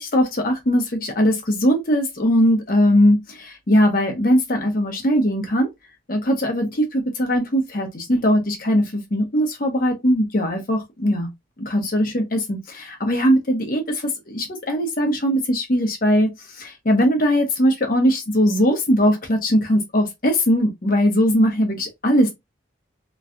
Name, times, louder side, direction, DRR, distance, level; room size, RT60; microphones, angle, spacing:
voice 1, 0.0-5.7 6.1-11.3 11.6-22.3, equal, 50° left, 0.9 m, -20 dB
3.1 x 2.3 x 2.5 m
head